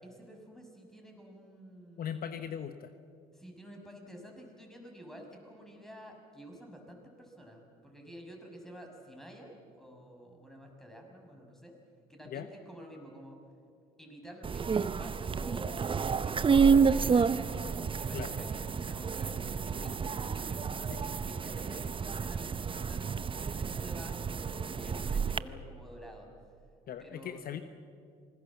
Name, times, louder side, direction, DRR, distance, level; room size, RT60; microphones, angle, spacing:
voice 1, 0.0-2.2 3.3-11.7 12.1-13.4 14.0-23.1 23.4-26.3 27.0-27.5, equal, ahead, 1 dB, 6.2 m, -50 dB
voice 2, 2.0-2.9 12.2-12.5 18.1-18.4 20.9-21.0 26.9-27.6, left 9 dB, 55° left, 9 dB, 1.1 m, -39 dB
sound 1, 14.4-25.4, right 6 dB, 30° right, 0.7 m, -30 dB
26.5 x 19.5 x 7.4 m, 2.3 s
hypercardioid pair, 65°, 19 cm